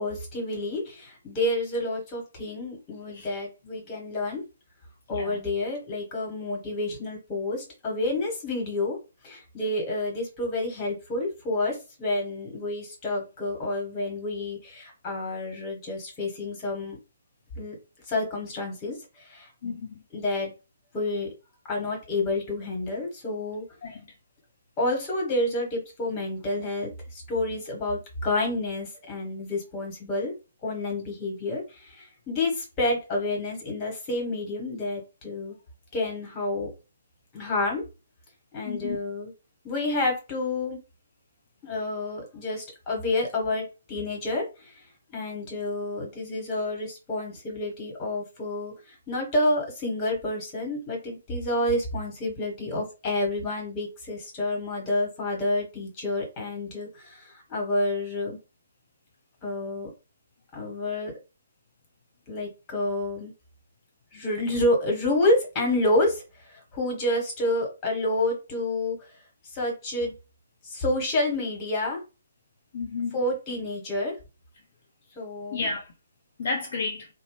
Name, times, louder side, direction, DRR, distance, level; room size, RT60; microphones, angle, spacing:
voice 1, 0.0-4.4 5.1-9.0 9.2-17.0 17.5-17.8 18.1-19.7 20.1-20.5 20.9-21.3 21.7-23.6 24.8-30.3 30.6-35.5 35.9-36.7 37.3-37.8 38.5-39.3 39.6-40.8 41.6-44.7 45.1-58.4 59.4-59.9 60.5-61.1 62.3-63.3 64.1-69.0 69.5-70.1 70.6-72.0 73.1-74.1 75.1-75.7, left 2 dB, 20° left, 1.3 m, -29 dB
voice 2, 19.6-20.0 23.8-24.1 38.7-39.0 72.7-73.2 75.5-75.9 76.4-77.1, left 4 dB, 50° left, 0.6 m, -32 dB
2.6 x 2.0 x 3.1 m
figure-of-eight pair, 135°, 0 cm